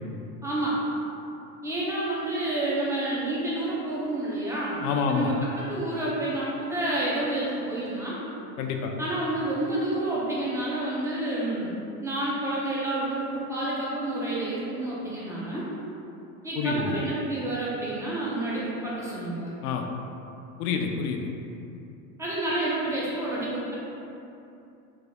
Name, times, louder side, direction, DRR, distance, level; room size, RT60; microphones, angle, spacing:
voice 1, 0.4-0.8 1.6-4.8 5.1-8.2 9.0-11.7 12.0-15.7 16.4-19.6 22.2-23.7, right 1 dB, 5° right, -7 dB, 0.4 m, -29 dB
voice 2, 4.8-5.3 8.6-8.9 16.6-16.9 19.6-19.9 20.6-21.2, left 6 dB, 70° left, 3 dB, 0.5 m, -27 dB
3.6 x 3.4 x 2.2 m, 2.8 s
supercardioid pair, 115°, 47 cm